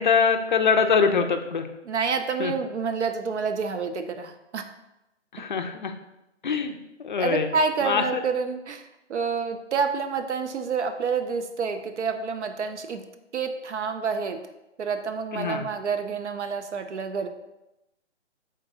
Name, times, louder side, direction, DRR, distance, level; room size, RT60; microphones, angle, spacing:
voice 1, 0.0-1.7 2.4-2.5 5.3-5.9 6.4-7.5 7.8-8.2 15.3-15.7, left 5 dB, 45° left, 6 dB, 0.4 m, -23 dB
voice 2, 1.9-4.6 7.2-13.0 13.3-14.4 14.8-17.3, right 5 dB, 70° right, 8 dB, 0.5 m, -28 dB
5.2 x 3.8 x 2.6 m, 0.94 s
figure-of-eight pair, 140°, 36 cm